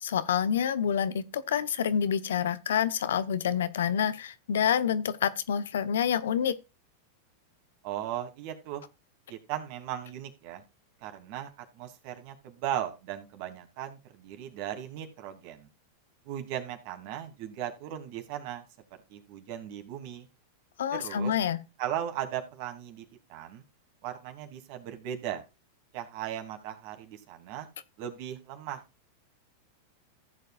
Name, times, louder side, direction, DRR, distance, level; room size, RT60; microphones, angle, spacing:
voice 1, 0.0-6.6 20.8-21.6, left 8 dB, 80° left, 0.9 m, -27 dB
voice 2, 7.8-8.8 9.3-10.6 11.0-15.7 16.3-18.6 19.1-20.3 20.9-21.3 21.8-23.6 24.0-25.4 25.9-27.7 28.0-28.8, right 11 dB, 55° right, 2.8 m, -37 dB
15.0 x 7.5 x 2.4 m
hypercardioid pair, 110°, 0 cm